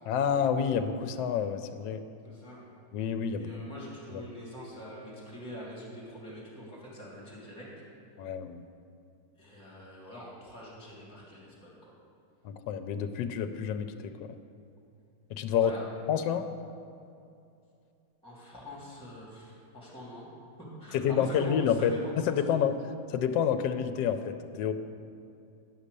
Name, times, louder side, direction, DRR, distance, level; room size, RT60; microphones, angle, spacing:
voice 1, 0.1-2.0 2.9-3.5 4.1-4.2 8.2-8.6 12.4-14.4 15.3-15.7 16.1-16.5 20.9-21.9 22.3-22.8 23.1-24.7, left 8 dB, 75° left, 8 dB, 1.2 m, -28 dB
voice 2, 2.2-2.6 3.3-7.6 9.4-11.9 15.5-15.8 18.2-20.3 20.8-22.6, equal, 5° left, -6 dB, 2.6 m, -44 dB
10.0 x 6.2 x 6.7 m, 2.6 s
omnidirectional pair, 2.1 m